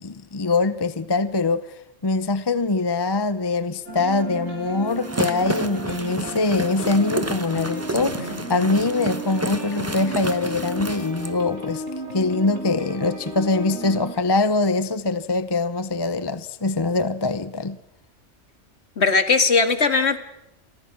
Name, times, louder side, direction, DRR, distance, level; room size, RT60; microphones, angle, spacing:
voice 1, 0.0-11.8 12.1-17.8, left 3 dB, 25° left, 0.8 m, -23 dB
sound 1, 3.9-14.1, equal, 65° right, 6.0 m, -34 dB
sound 2, 4.9-11.3, right 2 dB, 15° right, 1.1 m, -31 dB
voice 2, 19.0-20.2, left 4 dB, 60° left, 2.2 m, -18 dB
30.0 x 23.5 x 6.0 m
omnidirectional pair, 1.3 m